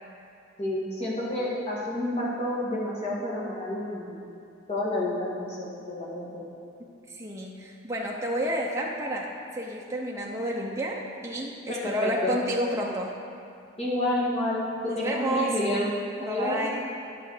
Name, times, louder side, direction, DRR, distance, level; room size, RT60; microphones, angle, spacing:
voice 1, 0.6-4.1 4.7-6.3 11.7-12.4 13.8-15.9 16.2-16.6, left 1 dB, 35° left, -6 dB, 2.2 m, -29 dB
voice 2, 6.8-13.1 14.8-15.6 16.2-16.8, equal, 15° right, -3 dB, 0.7 m, -30 dB
10.5 x 6.8 x 4.9 m, 2.5 s
head